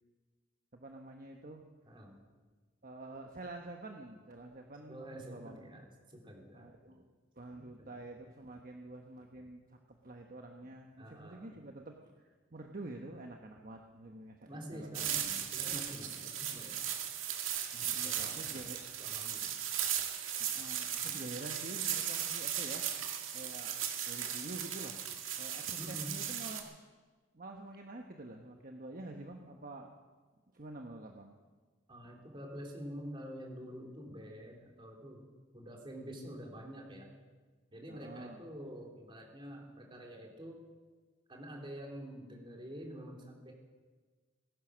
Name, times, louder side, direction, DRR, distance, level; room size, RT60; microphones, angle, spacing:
voice 1, 0.7-1.6 2.8-5.6 6.5-7.1 7.3-12.0 12.5-15.1 17.7-18.8 20.4-22.9 23.3-23.8 24.1-25.0 25.4-26.7 27.3-29.9 30.5-31.4 37.9-38.4, right 2 dB, 45° right, 3 dB, 1.1 m, -48 dB
voice 2, 1.8-2.2 4.9-7.0 7.6-7.9 11.0-11.6 14.5-16.9 17.8-19.5 21.0-21.2 25.8-26.1 31.9-35.3 35.5-37.1 37.7-40.6 41.3-43.5, equal, 25° right, 0 dB, 3.1 m, -47 dB
sound 1, 14.9-26.6, right 9 dB, 90° right, 2.1 m, -37 dB
19.5 x 11.0 x 6.3 m, 1.4 s
head